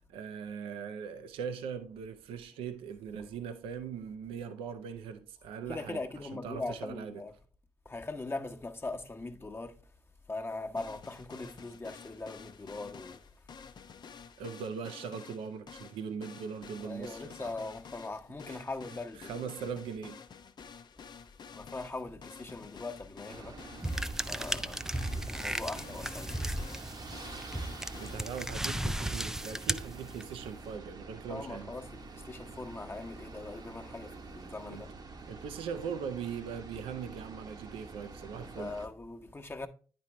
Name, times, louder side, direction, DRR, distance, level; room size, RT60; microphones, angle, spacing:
voice 1, 0.1-6.0 6.3-7.2 14.4-17.5 18.5-18.6 19.2-20.2 28.0-31.7 34.7-34.8 35.3-38.8, right 7 dB, 80° right, 0.6 m, -40 dB
voice 2, 5.6-7.4 7.8-9.8 10.3-13.3 16.8-19.3 21.5-23.6 24.0-26.4 31.3-34.9 38.3-39.7, left 3 dB, 25° left, 1.0 m, -41 dB
sound 1, 10.8-28.2, left 6 dB, 50° left, 0.6 m, -50 dB
sound 2, 23.3-38.9, right 4 dB, 50° right, 1.0 m, -47 dB
sound 3, 23.8-30.5, right 1 dB, 5° right, 0.4 m, -35 dB
9.5 x 4.3 x 3.2 m
hypercardioid pair, 45°, 9 cm